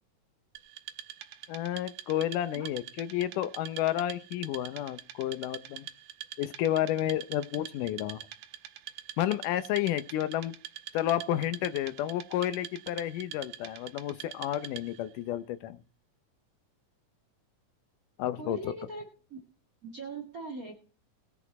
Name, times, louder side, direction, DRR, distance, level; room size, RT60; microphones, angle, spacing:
Wood, 0.6-15.1, right 13 dB, 80° right, 2.6 m, -45 dB
voice 1, 1.5-5.9 6.4-8.2 9.2-10.5 10.9-15.8 18.2-18.7, left 12 dB, 80° left, 2.4 m, -31 dB
voice 2, 18.4-19.0 19.3-19.4 19.8-20.7, right 3 dB, 35° right, 1.5 m, -40 dB
20.0 x 7.2 x 4.2 m
omnidirectional pair, 3.7 m